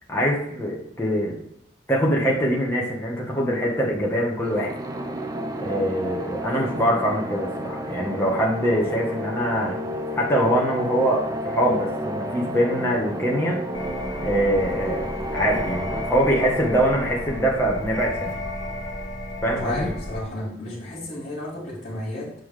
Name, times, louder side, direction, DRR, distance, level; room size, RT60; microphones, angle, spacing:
voice 1, 0.1-1.3 1.9-4.7 5.6-9.8 10.2-13.6 14.2-18.3 19.4-19.9, equal, 10° left, -4 dB, 1.4 m, -23 dB
sound 1, 4.4-19.1, equal, 20° right, 0.5 m, -32 dB
sound 2, 13.7-20.2, left 1 dB, 75° left, 1.1 m, -33 dB
voice 2, 19.6-22.3, left 1 dB, 40° left, -8 dB, 2.8 m, -32 dB
7.5 x 4.4 x 5.0 m, 0.73 s
head